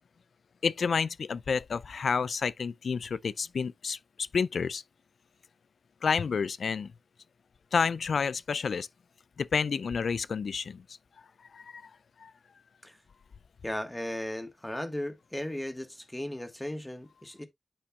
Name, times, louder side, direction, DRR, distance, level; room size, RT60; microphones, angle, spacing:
voice 1, 0.6-4.8 6.0-6.9 7.7-8.9 9.4-10.8 11.5-11.9 12.2-12.3, left 5 dB, 85° left, 0.3 m, -30 dB
voice 2, 13.6-17.5, left 1 dB, 15° left, 1.4 m, -36 dB
8.6 x 5.2 x 2.3 m
cardioid pair, 50°, 0 cm